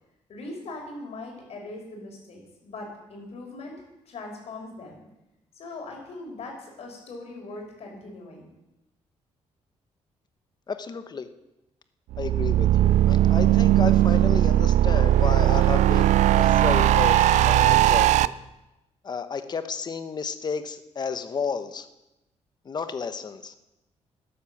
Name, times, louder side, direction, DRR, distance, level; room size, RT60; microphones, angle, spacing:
voice 1, 0.3-3.8 4.0-5.0 5.5-8.5, left 2 dB, 65° left, 1 dB, 4.8 m, -40 dB
voice 2, 10.7-11.3 12.2-18.3 19.0-21.9 22.6-23.5, left 5 dB, 35° left, 10 dB, 1.1 m, -32 dB
sound 1, 12.1-18.3, right 13 dB, 90° right, 0.4 m, -19 dB
13.0 x 10.0 x 7.2 m, 0.94 s
cardioid pair, 115°, 12 cm